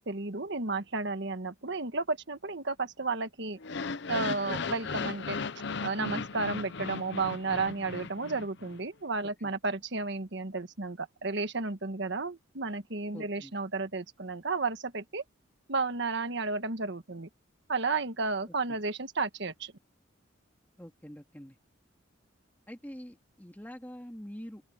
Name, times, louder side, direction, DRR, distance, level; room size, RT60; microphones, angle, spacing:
voice 1, 0.0-3.6 4.1-5.4 5.8-15.2 15.7-17.3 17.7-19.7, right 3 dB, 60° right, 1.5 m, -32 dB
sound 1, 3.6-8.8, left 4 dB, 60° left, 0.8 m, -36 dB
voice 2, 13.1-13.5 18.5-18.8 20.8-21.6 22.7-24.6, equal, 10° left, 2.5 m, -45 dB
open air
head